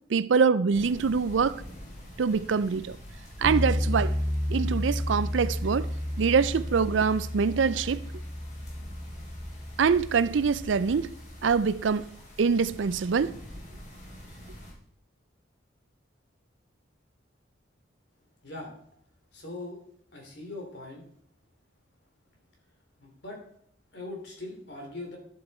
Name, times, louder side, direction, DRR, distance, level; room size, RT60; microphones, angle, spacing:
voice 1, 0.1-1.6 2.2-3.0 3.4-4.2 4.5-5.9 6.2-8.0 9.8-11.1 11.4-12.1 12.4-13.4, right 5 dB, 75° right, 0.4 m, -24 dB
sound 1, 0.7-14.7, equal, 40° left, 3.4 m, -46 dB
sound 2, 3.4-11.6, equal, ahead, 0.9 m, -32 dB
voice 2, 19.3-19.8 20.1-21.0 23.0-23.4 23.9-25.2, left 2 dB, 60° left, 3.3 m, -40 dB
11.5 x 7.7 x 4.3 m
head